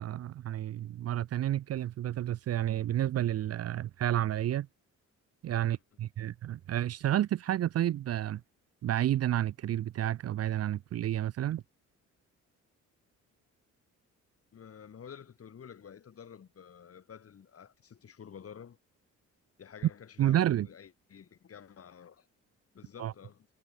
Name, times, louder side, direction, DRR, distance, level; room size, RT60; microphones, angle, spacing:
voice 1, 0.0-4.7 5.4-8.4 8.8-11.6 20.2-20.7 23.0-23.1, right 12 dB, 55° right, 0.6 m, -30 dB
voice 2, 14.5-18.8 19.6-22.3 22.7-23.5, left 7 dB, 50° left, 4.9 m, -50 dB
cardioid pair, 90°, 30 cm